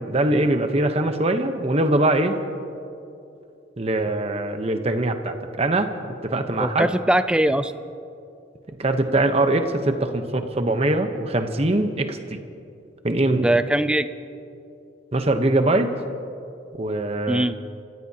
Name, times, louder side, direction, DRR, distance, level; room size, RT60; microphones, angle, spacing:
voice 1, 0.0-2.4 3.8-5.9 6.2-6.9 8.8-12.4 13.0-13.5 15.1-15.9 16.7-17.4, right 2 dB, 30° right, 7 dB, 0.9 m, -22 dB
voice 2, 6.6-7.7 13.3-14.1 17.3-17.6, right 1 dB, 5° right, 11 dB, 0.4 m, -21 dB
29.5 x 15.0 x 2.8 m, 2.7 s
head